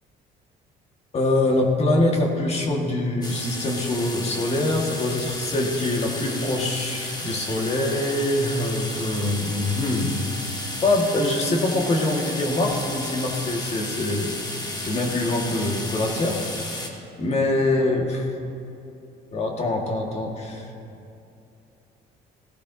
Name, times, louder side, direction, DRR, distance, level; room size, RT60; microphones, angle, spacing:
voice 1, 1.1-10.1 10.8-14.4 14.7-16.7 17.2-18.3 19.3-20.7, left 2 dB, 40° left, 1 dB, 1.8 m, -24 dB
sound 1, 3.2-16.9, left 1 dB, 25° left, 1.5 m, -33 dB
17.0 x 15.0 x 2.8 m, 2.7 s
cardioid pair, 110°, 17 cm